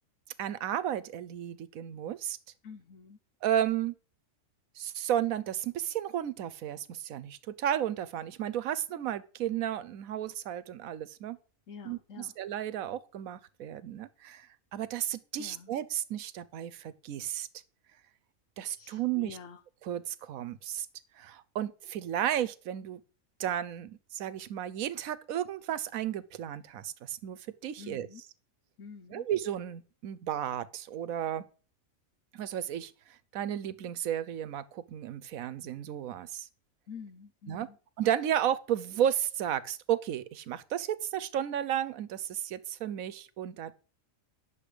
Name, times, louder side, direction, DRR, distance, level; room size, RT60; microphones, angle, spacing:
voice 1, 0.4-2.4 3.4-3.9 4.8-11.4 11.8-17.5 18.6-19.4 19.8-20.9 21.2-23.0 23.4-28.1 29.1-31.4 32.3-36.5 37.5-37.7 38.0-43.7, right 10 dB, 90° right, 1.2 m, -33 dB
voice 2, 2.6-3.2 11.7-12.3 15.4-15.8 18.7-19.6 27.8-28.2 28.8-29.3 36.9-37.8, left 6 dB, 70° left, 1.2 m, -47 dB
10.0 x 7.3 x 4.9 m
omnidirectional pair, 1.4 m